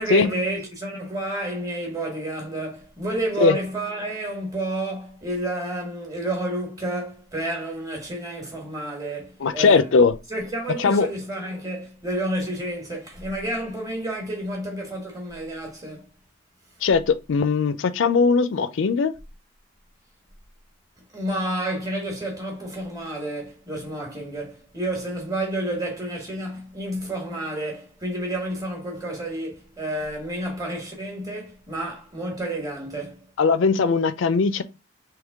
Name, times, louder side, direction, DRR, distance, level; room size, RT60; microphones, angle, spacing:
voice 1, 0.0-9.9 10.3-16.1 21.1-33.2, right 1 dB, 15° right, 1.3 m, -30 dB
voice 2, 9.4-10.2 10.8-11.1 16.8-19.1 33.4-34.6, left 5 dB, 65° left, 0.4 m, -19 dB
3.6 x 2.9 x 3.4 m
head